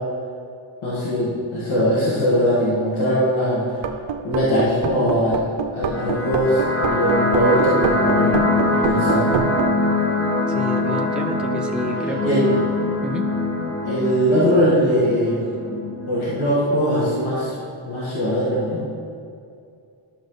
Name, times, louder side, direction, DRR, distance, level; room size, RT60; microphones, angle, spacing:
voice 1, 0.8-3.7 4.2-5.5 5.7-8.4 8.7-9.3 12.2-12.4 13.9-15.4 16.1-17.5 17.9-18.8, equal, 80° left, -7 dB, 2.1 m, -20 dB
sound 1, 3.7-9.7, right 7 dB, 65° right, 0.7 m, -27 dB
sound 2, 5.8-16.8, left 2 dB, 25° left, 1.6 m, -23 dB
voice 2, 10.5-12.5 13.0-13.3, equal, ahead, 2 dB, 0.6 m, -29 dB
10.5 x 6.6 x 3.9 m, 2.4 s
cardioid pair, 100°, 48 cm